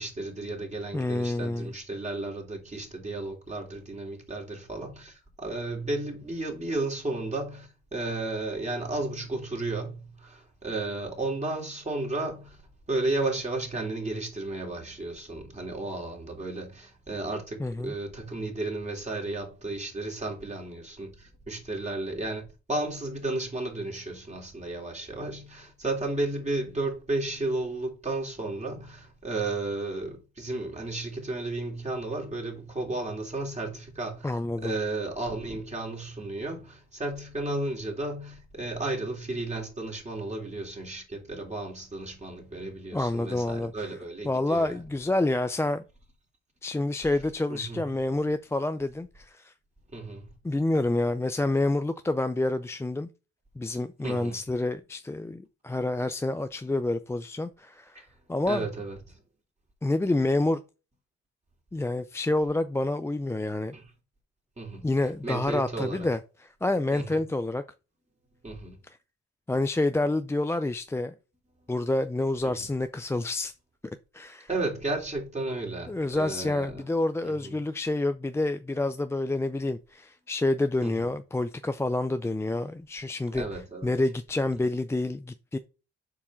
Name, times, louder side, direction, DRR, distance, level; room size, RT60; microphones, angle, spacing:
voice 1, 0.0-12.6 12.9-34.3 34.6-44.8 47.0-47.1 47.5-47.9 49.9-50.3 54.0-54.3 57.9-58.1 58.5-59.2 63.7-63.8 64.6-64.9 65.2-66.1 66.9-67.2 68.4-68.8 72.4-72.7 74.5-76.8 77.2-77.6 80.8-80.9 83.3-83.9, right 2 dB, 25° right, 3.3 m, -33 dB
voice 2, 0.9-1.7 17.6-17.9 34.2-34.7 42.9-43.9 44.2-45.8 46.6-49.5 50.4-53.1 53.6-58.0 58.3-58.7 59.8-60.6 61.7-63.8 64.8-67.6 69.5-71.1 71.7-73.5 74.1-74.5 75.9-83.4 83.8-85.6, left 2 dB, 10° left, 0.4 m, -28 dB
7.0 x 4.7 x 6.2 m
cardioid pair, 90°, 30 cm